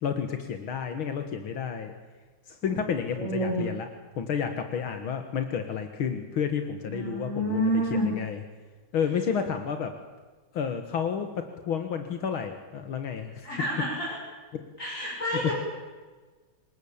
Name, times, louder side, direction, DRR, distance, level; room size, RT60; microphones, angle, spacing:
voice 1, 0.0-1.9 2.5-3.9 4.2-8.4 8.9-9.9 10.5-11.3 11.7-13.5 14.5-14.6 15.4-15.5, left 7 dB, 75° left, 7 dB, 2.4 m, -30 dB
voice 2, 3.1-3.6 6.8-8.1 13.4-14.2 14.8-15.5, right 1 dB, 35° left, -3 dB, 6.4 m, -29 dB
26.5 x 20.5 x 8.8 m, 1.3 s
omnidirectional pair, 2.3 m